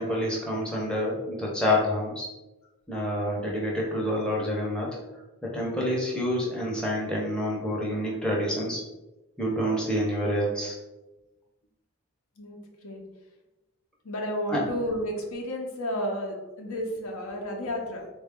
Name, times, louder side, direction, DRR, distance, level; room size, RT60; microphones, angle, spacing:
voice 1, 0.0-2.3 2.9-5.0 5.4-8.8 9.4-10.7 14.5-14.6, equal, 5° left, -4 dB, 0.6 m, -28 dB
voice 2, 12.4-13.0 14.0-18.1, equal, 70° left, 1 dB, 0.7 m, -32 dB
3.9 x 2.3 x 3.5 m, 1.0 s
head